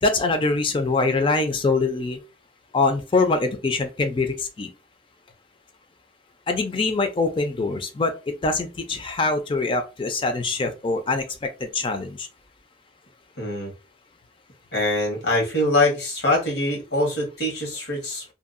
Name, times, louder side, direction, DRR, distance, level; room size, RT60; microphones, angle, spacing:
voice 1, 0.0-2.2 2.7-4.7 6.5-8.1 8.4-12.3, left 3 dB, 30° left, 7 dB, 0.4 m, -24 dB
voice 2, 13.4-13.7 14.7-18.2, left 2 dB, 85° left, -1 dB, 1.3 m, -23 dB
2.7 x 2.3 x 2.5 m, 0.30 s
head